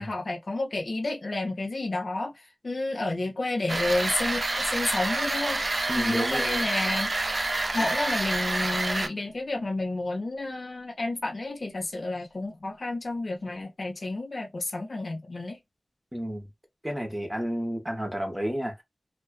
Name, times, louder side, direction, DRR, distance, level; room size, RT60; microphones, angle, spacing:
voice 1, 0.0-5.6 6.0-7.1 7.7-15.6, left 2 dB, 50° left, 0.6 m, -30 dB
sound 1, 3.7-9.1, right 2 dB, 45° right, 0.4 m, -28 dB
voice 2, 5.9-6.6 16.1-16.5 16.8-18.8, equal, 10° right, 0.8 m, -31 dB
sound 2, 7.7-9.2, left 3 dB, 80° left, 1.0 m, -38 dB
2.4 x 2.2 x 2.3 m
wide cardioid pair, 90°, 0 cm